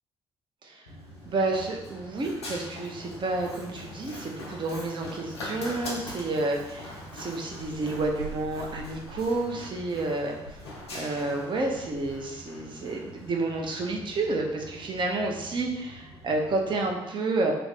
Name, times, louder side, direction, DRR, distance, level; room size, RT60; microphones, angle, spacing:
Run, 0.9-16.9, left 1 dB, 90° left, 0.5 m, -42 dB
voice 1, 1.3-10.4 10.9-17.5, right 2 dB, 35° right, 1 dB, 0.6 m, -30 dB
2.5 x 2.2 x 4.0 m, 0.95 s
figure-of-eight pair, 40°, 13 cm